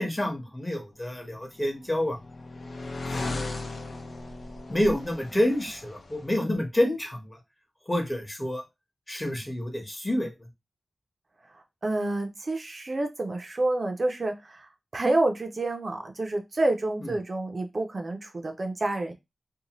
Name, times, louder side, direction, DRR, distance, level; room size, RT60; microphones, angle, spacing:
voice 1, 0.0-2.2 3.1-3.4 4.7-7.4 7.9-8.6 9.1-10.3 17.0-17.1, left 1 dB, 20° left, 3 dB, 0.9 m, -28 dB
sound 1, 1.4-6.3, left 2 dB, 70° left, 0.5 m, -37 dB
voice 2, 11.8-14.7 14.9-19.1, right 2 dB, 45° right, 4 dB, 0.4 m, -28 dB
2.7 x 2.1 x 2.9 m, 0.22 s
wide cardioid pair, 80°, 0 cm